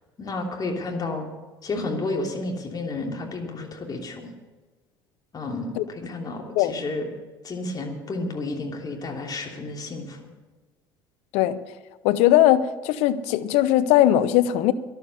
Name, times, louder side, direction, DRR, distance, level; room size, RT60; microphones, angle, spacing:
voice 1, 0.2-1.3 1.6-4.2 5.3-7.1 7.4-10.2, left 2 dB, 30° left, 3.0 m, -31 dB
voice 2, 12.0-14.7, left 13 dB, 60° left, 0.8 m, -19 dB
13.0 x 11.0 x 6.9 m
figure-of-eight pair, 60°, 12 cm